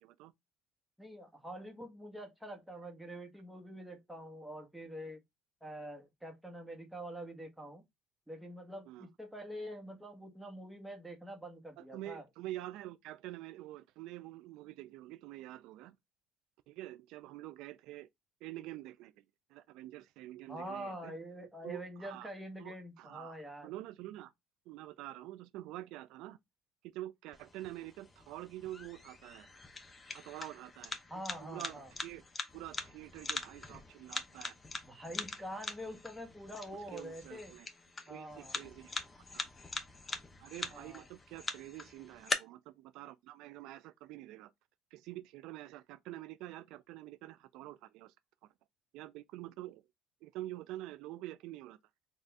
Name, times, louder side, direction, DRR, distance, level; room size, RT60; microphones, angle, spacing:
voice 1, 0.0-0.3 8.9-9.1 11.8-16.0 16.7-18.1 18.4-19.1 19.5-21.1 21.6-22.3 22.6-23.4 23.6-24.3 24.7-26.4 26.9-29.5 30.1-30.9 31.4-32.2 32.5-34.6 36.9-37.7 38.1-39.4 40.4-44.5 44.9-48.1 48.4-48.5 48.9-49.8 50.2-51.8, right 15 dB, 75° right, 0.3 m, -47 dB
voice 2, 1.0-5.2 5.6-7.8 8.3-12.2 20.5-23.7 31.1-31.9 34.8-37.5 38.1-38.5 40.7-41.1, equal, 5° right, 1.2 m, -45 dB
sound 1, 27.3-42.3, left 3 dB, 25° left, 0.7 m, -43 dB
4.0 x 2.5 x 3.3 m
supercardioid pair, 100°, 0 cm